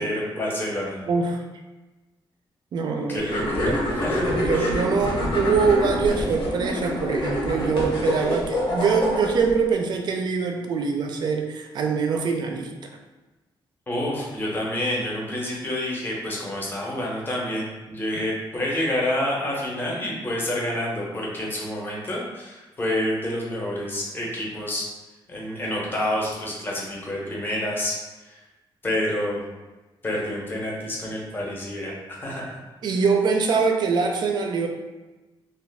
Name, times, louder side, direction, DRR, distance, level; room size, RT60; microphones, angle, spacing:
voice 1, 0.0-1.0 3.1-4.3 4.5-4.7 13.9-24.8 25.3-27.9 28.3-28.4 28.8-29.4 30.0-32.6, left 1 dB, 25° left, -3 dB, 0.6 m, -28 dB
voice 2, 1.1-1.4 2.7-3.3 4.1-12.7 32.8-34.7, right 5 dB, 55° right, 3 dB, 0.4 m, -23 dB
sound 1, 3.2-9.5, left 1 dB, 70° left, 0.8 m, -26 dB
2.3 x 2.2 x 3.3 m, 1.1 s
wide cardioid pair, 175°, 9 cm